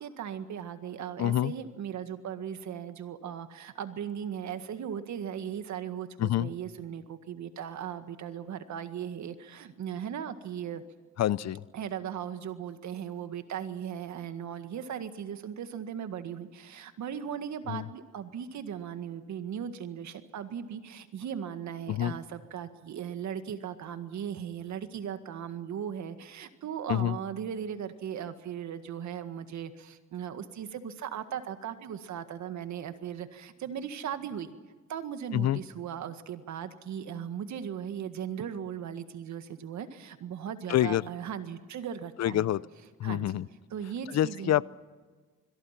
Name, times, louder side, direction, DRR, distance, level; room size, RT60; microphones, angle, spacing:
voice 1, 0.0-10.8 11.7-34.5 34.9-42.5 43.0-43.3 43.7-44.5, right 8 dB, 70° right, 9 dB, 1.8 m, -38 dB
voice 2, 1.2-1.5 6.2-6.5 11.2-11.6 17.7-17.9 21.9-22.1 26.9-27.2 35.3-35.6 40.7-41.0 42.2-42.6 43.0-43.5 44.1-44.6, left 12 dB, 60° left, 20 dB, 0.6 m, -26 dB
26.5 x 22.0 x 6.0 m, 1.4 s
cardioid pair, 90°, 30 cm